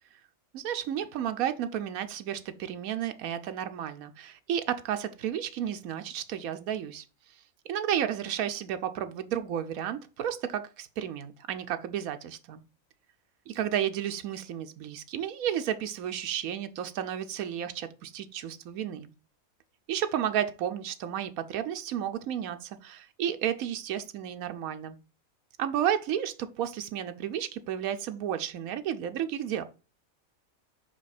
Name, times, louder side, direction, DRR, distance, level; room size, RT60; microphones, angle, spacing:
voice 1, 0.5-7.0 7.6-12.6 13.5-19.1 19.9-25.0 25.6-29.7, right 10 dB, 90° right, 1.1 m, -32 dB
5.5 x 4.9 x 4.1 m
omnidirectional pair, 1.5 m